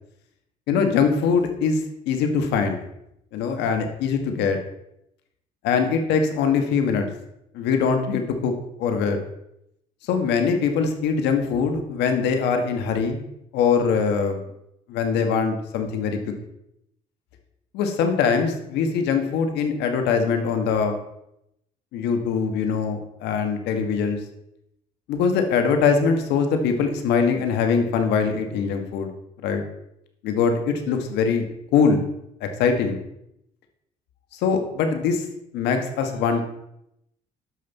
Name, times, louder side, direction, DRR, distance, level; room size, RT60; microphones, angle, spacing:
voice 1, 0.7-1.8 2.1-2.8 3.3-4.6 5.6-7.1 7.5-8.5 8.8-9.2 10.1-13.2 13.5-14.4 14.9-16.2 17.7-21.0 21.9-24.2 25.1-29.1 29.4-29.6 30.2-32.0 32.4-33.0 34.3-35.2 35.5-36.4, left 5 dB, 85° left, 6 dB, 1.3 m, -22 dB
13.0 x 5.3 x 4.1 m, 0.81 s
cardioid pair, 110°, 17 cm